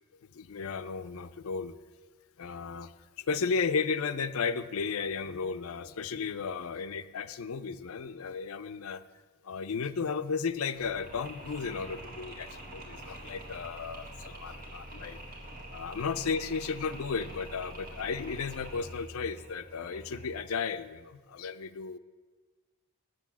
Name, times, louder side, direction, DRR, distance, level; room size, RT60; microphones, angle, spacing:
voice 1, 0.3-1.8 2.4-9.0 9.4-15.2 15.7-22.0, left 5 dB, 70° left, 11 dB, 0.5 m, -34 dB
Mechanisms, 10.7-20.5, right 1 dB, 45° right, 2.1 m, -45 dB
8.2 x 7.5 x 7.2 m, 1.4 s
head